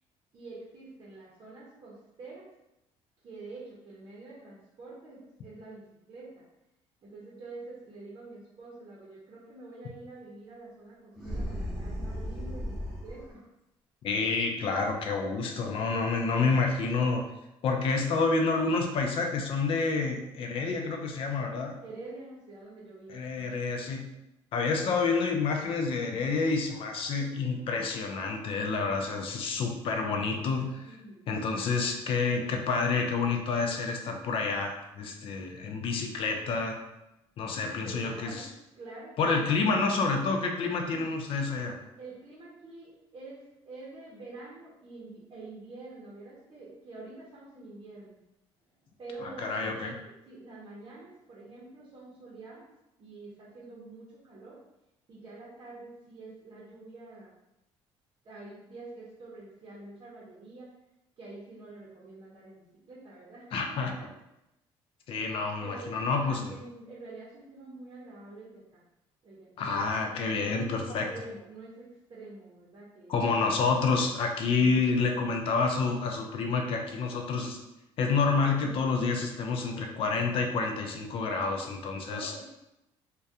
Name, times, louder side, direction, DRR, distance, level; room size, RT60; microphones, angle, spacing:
voice 1, 0.3-2.5 3.2-5.8 6.1-6.5 7.0-13.4 21.8-23.7 30.9-31.2 37.8-38.5 38.8-39.2 40.8-41.0 42.0-48.2 49.0-52.7 53.0-54.6 55.1-57.3 58.2-60.7 61.2-63.9 65.6-68.8 69.2-69.9 70.3-73.6 82.1-82.4, right 2 dB, 40° right, -6 dB, 0.7 m, -47 dB
sound 1, 11.1-13.3, equal, ahead, 0.9 m, -35 dB
voice 2, 14.0-17.2 17.6-21.7 23.1-24.0 24.5-30.9 31.3-36.8 37.4-38.5 39.2-41.8 49.2-49.9 63.5-63.9 65.1-66.5 69.6-71.1 73.1-77.6 78.0-82.3, left 4 dB, 55° left, 3 dB, 0.4 m, -28 dB
2.2 x 2.2 x 2.7 m, 0.91 s
cardioid pair, 100°, 11 cm